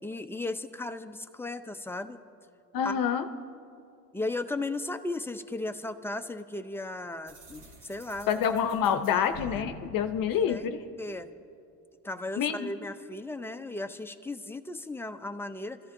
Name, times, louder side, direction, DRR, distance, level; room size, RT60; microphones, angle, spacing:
voice 1, 0.0-2.2 2.8-3.0 4.1-8.4 9.1-9.6 10.5-11.3 12.0-15.8, left 2 dB, 5° left, 8 dB, 0.5 m, -36 dB
voice 2, 2.7-3.3 8.3-10.8 12.4-12.7, left 8 dB, 55° left, 8 dB, 0.7 m, -27 dB
sound 1, 7.3-11.1, equal, 75° right, 2.7 m, -48 dB
24.5 x 14.5 x 2.6 m, 2.6 s
cardioid pair, 105°, 39 cm